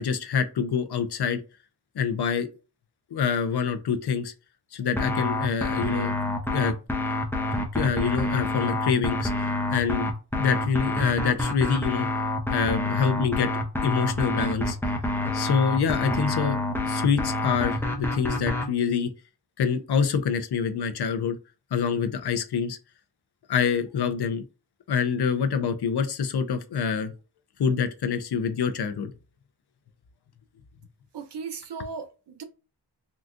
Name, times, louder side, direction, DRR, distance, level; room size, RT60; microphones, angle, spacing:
voice 1, 0.0-1.4 1.9-2.5 3.1-4.3 4.7-6.1 6.5-6.7 7.6-9.3 9.7-10.1 10.4-12.1 12.5-13.5 13.8-14.8 15.3-19.1 19.6-21.4 21.7-22.8 23.5-24.4 24.9-27.1 27.6-29.1, left 6 dB, 65° left, 0.6 m, -26 dB
sound 1, 5.0-18.7, left 1 dB, 5° left, 0.6 m, -27 dB
voice 2, 31.1-32.4, right 5 dB, 70° right, 0.7 m, -37 dB
3.8 x 2.3 x 2.5 m
wide cardioid pair, 95°, 42 cm